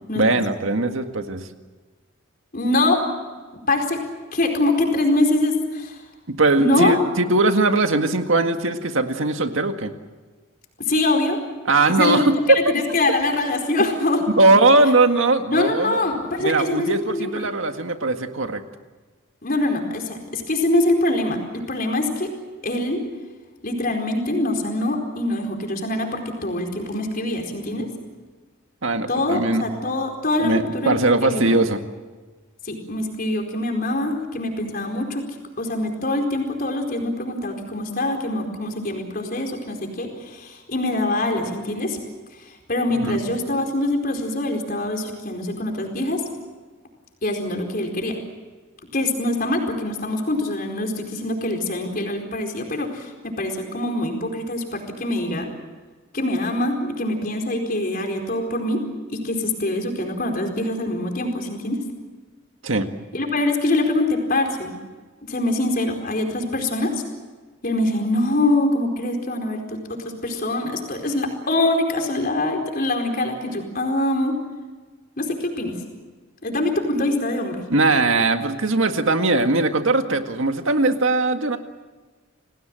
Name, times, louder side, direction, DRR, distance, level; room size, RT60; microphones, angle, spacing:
voice 1, 0.2-1.5 6.3-9.9 11.7-12.4 14.4-16.0 16.4-18.6 28.8-29.7 30.4-31.8 42.9-43.1 62.6-62.9 77.7-81.6, right 2 dB, 70° right, 6 dB, 1.9 m, -20 dB
voice 2, 2.5-3.0 3.7-4.0 4.3-6.0 6.6-6.9 10.9-11.4 11.9-12.3 12.7-14.5 15.5-17.4 19.4-22.3 22.6-23.0 23.6-27.9 29.1-31.6 32.6-35.2 35.6-42.0 42.7-46.2 47.2-48.2 48.9-55.5 56.1-58.8 59.1-61.8 63.1-64.7 65.2-66.9 67.6-69.8 70.2-74.4 75.2-75.7 76.4-77.6, left 2 dB, 45° left, 3 dB, 4.5 m, -24 dB
28.5 x 19.0 x 7.7 m, 1.3 s
head